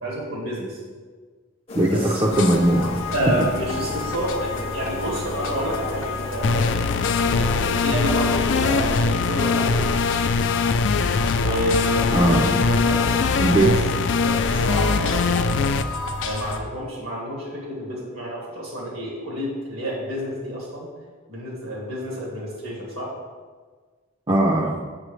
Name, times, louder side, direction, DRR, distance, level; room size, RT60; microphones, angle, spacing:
voice 1, 0.0-0.8 1.9-2.2 3.1-6.9 7.2-10.5 11.3-13.7 14.1-15.7 16.2-20.9 21.3-23.1, equal, 85° right, -3 dB, 1.9 m, -29 dB
sound 1, 1.7-8.4, left 2 dB, 30° left, 0.7 m, -37 dB
voice 2, 1.7-3.0 12.1-12.6 13.4-13.7 24.3-24.8, right 1 dB, 25° right, -2 dB, 0.5 m, -19 dB
sound 2, 2.3-16.6, left 4 dB, 85° left, 0.7 m, -31 dB
sound 3, 6.4-15.8, left 4 dB, 60° left, 0.3 m, -22 dB
7.6 x 6.9 x 3.2 m, 1.5 s
head